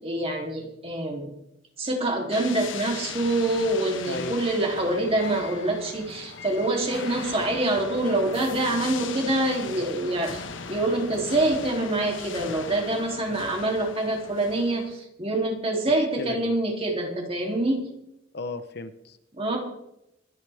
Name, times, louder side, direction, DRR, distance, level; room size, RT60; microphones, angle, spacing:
voice 1, 0.0-1.3 1.8-17.8 19.3-19.6, right 2 dB, 30° right, 0 dB, 3.2 m, -26 dB
sound 1, 2.3-15.0, left 5 dB, 85° left, 1.3 m, -39 dB
voice 2, 16.0-16.5 18.3-19.2, left 2 dB, 55° left, 10 dB, 0.9 m, -36 dB
26.0 x 10.5 x 3.6 m, 0.85 s
head